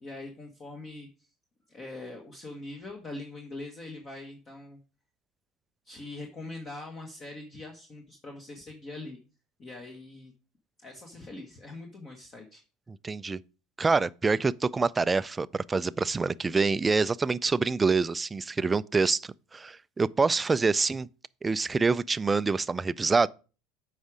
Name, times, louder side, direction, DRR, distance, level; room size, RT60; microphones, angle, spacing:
voice 1, 0.0-1.1 1.7-4.8 5.8-9.2 9.6-10.3 10.8-12.6, left 2 dB, 35° left, 1.4 m, -42 dB
voice 2, 12.9-13.4 13.8-21.1 21.4-23.3, right 4 dB, 20° right, 0.3 m, -26 dB
8.0 x 5.0 x 5.0 m
supercardioid pair, 105°, 0 cm